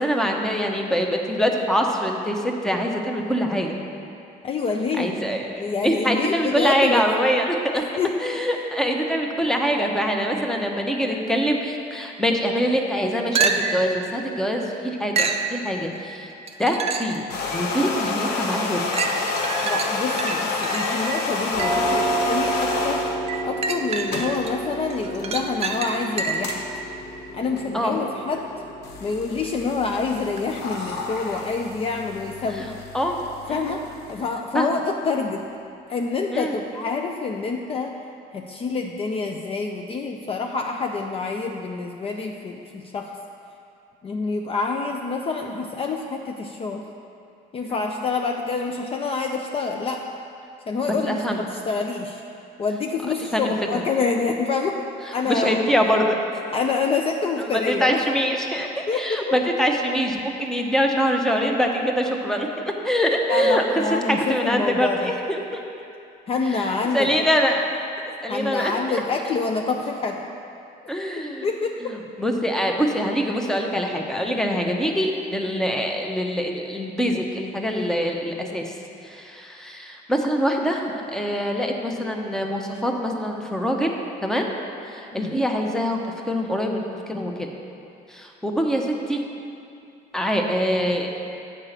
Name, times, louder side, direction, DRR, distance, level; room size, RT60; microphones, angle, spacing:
voice 1, 0.0-3.8 5.0-7.9 8.2-16.3 16.6-17.2 17.5-18.8 27.7-28.0 32.6-33.2 33.5-33.8 34.5-34.7 36.3-36.5 47.7-47.8 50.9-51.4 53.3-53.5 55.3-56.2 57.7-63.6 64.1-65.6 66.6-66.7 66.9-67.7 68.0-69.0 70.9-71.5 71.9-83.9 84.2-84.5 84.9-86.0 86.3-87.5 88.1-89.3 90.1-91.1, equal, 5° left, 2 dB, 0.8 m, -24 dB
voice 2, 4.4-5.1 5.6-7.1 7.7-8.2 19.6-23.0 23.4-26.8 27.3-28.5 29.0-32.7 33.5-35.4 35.9-38.0 38.3-43.1 44.0-46.8 47.5-50.0 50.7-52.2 52.6-54.8 55.1-55.7 56.5-58.0 58.9-59.3 63.3-65.1 66.3-67.3 68.3-70.3 71.2-72.0 85.1-85.3, left 4 dB, 35° left, 3 dB, 0.5 m, -27 dB
sound 1, 13.4-13.9 15.2-15.5 16.5-17.2 17.8-17.9 18.9-21.9 23.3-24.5 24.9-26.6 30.4-30.5, right 5 dB, 35° right, 0.6 m, -27 dB
sound 2, 17.1-23.2 23.8-34.3, left 3 dB, 80° left, 0.9 m, -30 dB
sound 3, 21.5-33.0, right 2 dB, 60° left, 2.1 m, -32 dB
7.3 x 4.9 x 6.6 m, 2.6 s
cardioid pair, 110°, 17 cm